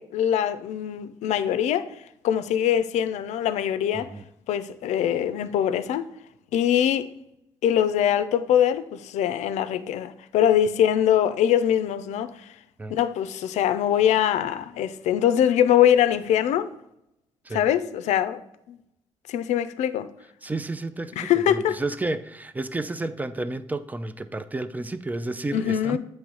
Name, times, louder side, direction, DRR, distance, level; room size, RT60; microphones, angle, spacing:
voice 1, 0.0-1.9 2.2-4.1 4.5-6.1 6.5-7.1 7.6-12.5 12.9-16.7 17.5-18.4 18.7-18.8 19.3-20.1 21.2-21.8 25.5-26.0, left 10 dB, 75° left, 0.5 m, -23 dB
voice 2, 20.4-26.0, right 2 dB, 15° right, 0.5 m, -31 dB
7.9 x 3.2 x 6.1 m
supercardioid pair, 70°, 12 cm